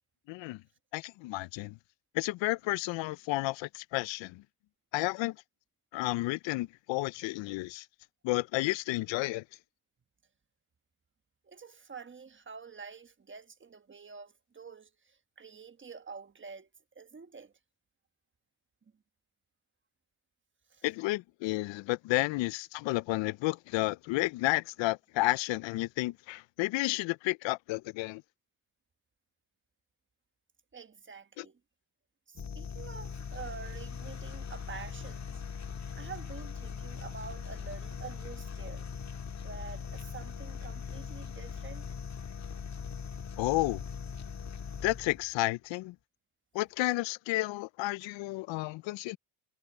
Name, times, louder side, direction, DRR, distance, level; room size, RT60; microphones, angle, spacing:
voice 1, 0.3-0.6 0.9-1.8 2.1-4.4 4.9-5.4 5.9-7.9 8.2-9.4 20.8-28.2 31.4-31.5 43.4-43.8 44.8-46.0 46.5-49.2, left 20 dB, 85° left, 0.5 m, -31 dB
voice 2, 11.4-16.7 16.9-17.5 20.7-20.8 30.7-31.6 32.3-35.4 35.9-38.9 39.4-41.9, right 5 dB, 25° right, 1.3 m, -47 dB
sound 1, 32.3-45.3, left 6 dB, 35° left, 1.7 m, -40 dB
cardioid pair, 90°, 44 cm